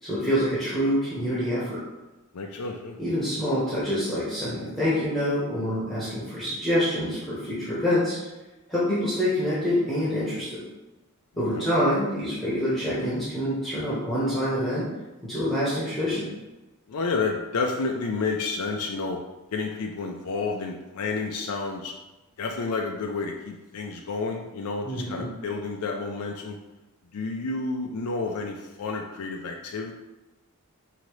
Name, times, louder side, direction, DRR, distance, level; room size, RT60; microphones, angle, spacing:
voice 1, 0.0-1.8 3.0-8.2 8.7-10.6 11.4-14.9 15.2-16.3 24.9-25.3, equal, ahead, -11 dB, 1.1 m, -26 dB
voice 2, 2.3-3.0 11.5-11.7 16.9-19.2 19.5-21.9 22.4-26.6 27.1-29.9, left 4 dB, 75° left, 1 dB, 0.5 m, -30 dB
5.1 x 2.8 x 3.1 m, 1.0 s
head